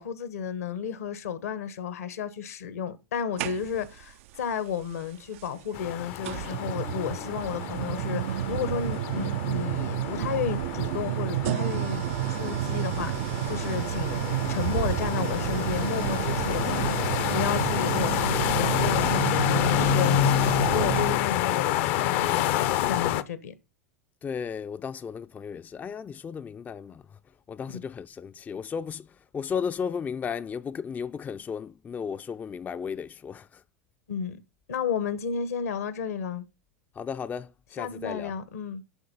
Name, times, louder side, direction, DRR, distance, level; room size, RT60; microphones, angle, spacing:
voice 1, 0.0-14.2 14.5-23.5 27.7-27.8 34.1-34.4 34.7-36.4 37.8-38.8, left 7 dB, 80° left, 1.2 m, -33 dB
sound 1, 3.4-4.0 5.4-5.5 6.2-21.3, right 14 dB, 65° right, 0.4 m, -30 dB
sound 2, 5.7-23.2, left 13 dB, 60° left, 0.6 m, -28 dB
voice 2, 24.2-33.6 36.9-38.3, left 6 dB, 20° left, 0.4 m, -35 dB
7.9 x 6.4 x 5.4 m
hypercardioid pair, 90°, 8 cm